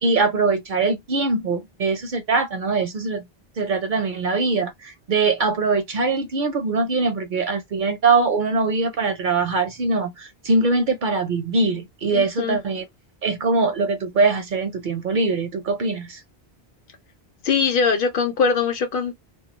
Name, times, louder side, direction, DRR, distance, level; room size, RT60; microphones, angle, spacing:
voice 1, 0.0-3.2 3.6-12.8 13.2-16.2, right 3 dB, 60° right, 0.6 m, -22 dB
voice 2, 12.1-12.6 17.4-19.1, left 5 dB, 60° left, 0.8 m, -21 dB
2.2 x 2.2 x 2.8 m
omnidirectional pair, 1.1 m